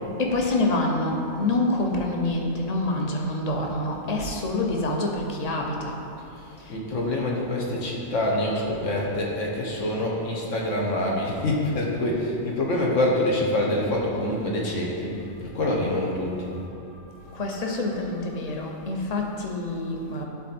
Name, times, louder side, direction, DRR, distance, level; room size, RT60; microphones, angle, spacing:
voice 1, 0.2-6.0 6.6-6.7 16.5-16.6 17.2-20.2, left 2 dB, 35° left, 0 dB, 0.9 m, -26 dB
voice 2, 6.7-15.1 15.4-16.5, left 1 dB, 75° left, -2 dB, 1.6 m, -26 dB
12.0 x 4.1 x 4.3 m, 2.7 s
omnidirectional pair, 1.3 m